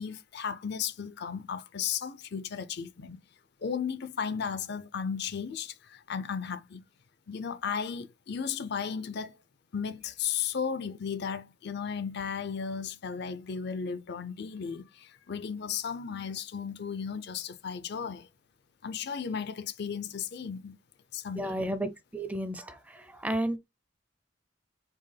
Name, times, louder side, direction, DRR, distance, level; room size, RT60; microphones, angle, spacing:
voice 1, 0.0-3.2 3.6-6.8 7.3-9.3 9.7-18.3 18.8-20.7 21.1-21.6, left 7 dB, 60° left, 0.5 m, -35 dB
voice 2, 21.4-22.7 23.2-23.6, right 1 dB, 10° right, 0.5 m, -31 dB
4.5 x 3.3 x 3.3 m
head